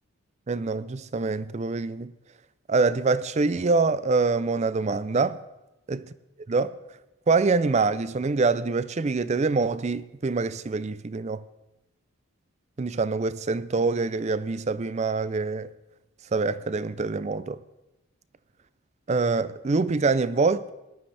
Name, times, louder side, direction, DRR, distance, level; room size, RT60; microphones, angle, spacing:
voice 1, 0.5-2.1 2.7-5.4 5.9-6.0 6.5-6.7 7.3-11.4 12.8-15.7 16.3-17.6 19.1-20.7, right 4 dB, 30° right, 0.4 m, -25 dB
18.0 x 12.0 x 3.3 m
head